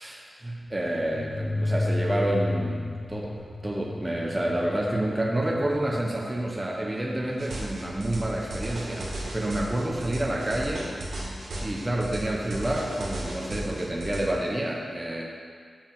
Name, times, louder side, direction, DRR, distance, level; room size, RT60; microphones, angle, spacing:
voice 1, 0.0-3.3 3.6-10.9 11.6-15.3, right 1 dB, 15° right, -2 dB, 0.8 m, -29 dB
sound 1, 0.6-9.0, left 2 dB, 50° left, 1.5 m, -33 dB
sound 2, 7.4-14.2, right 1 dB, 70° right, 1.7 m, -35 dB
7.3 x 5.2 x 5.9 m, 2.1 s
wide cardioid pair, 145°, 0 cm